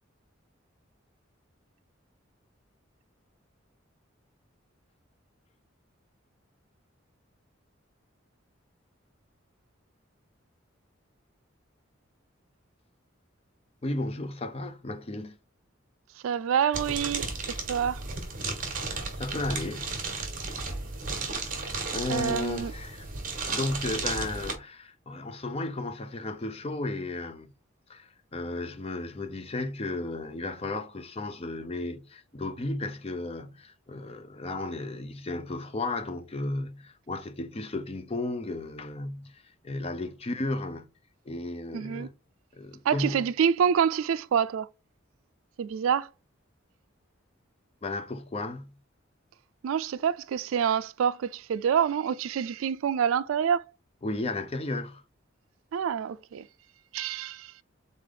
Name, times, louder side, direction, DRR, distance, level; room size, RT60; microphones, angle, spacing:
voice 1, 13.8-15.4 19.0-19.9 21.9-23.1 23.5-27.5 27.9-40.8 41.3-42.1 42.5-43.3 47.8-48.8 54.0-55.0, left 2 dB, 30° left, 0.5 m, -34 dB
voice 2, 16.2-17.3 17.7-18.0 22.1-22.7 41.7-42.1 42.8-44.7 45.6-46.1 49.6-53.7 55.7-56.5 56.9-57.5, right 8 dB, 85° right, 0.3 m, -27 dB
sound 1, 16.7-24.5, right 4 dB, 45° right, 1.3 m, -34 dB
4.0 x 3.4 x 3.7 m
head